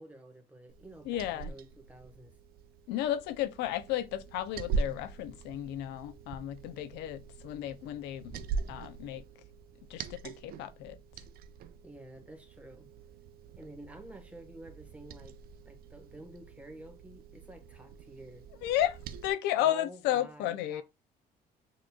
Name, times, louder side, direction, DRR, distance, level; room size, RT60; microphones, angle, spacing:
voice 1, 0.0-2.4 11.8-12.9 13.6-15.4 15.6-18.4 19.6-20.8, right 1 dB, 10° right, 1.1 m, -50 dB
Liquid, 0.7-19.3, right 5 dB, 65° right, 0.4 m, -42 dB
voice 2, 1.1-1.5 2.9-8.4 8.7-9.2 9.9-11.0 18.6-20.8, left 12 dB, 90° left, 0.4 m, -33 dB
6.2 x 2.9 x 2.2 m
cardioid pair, 110°, 17 cm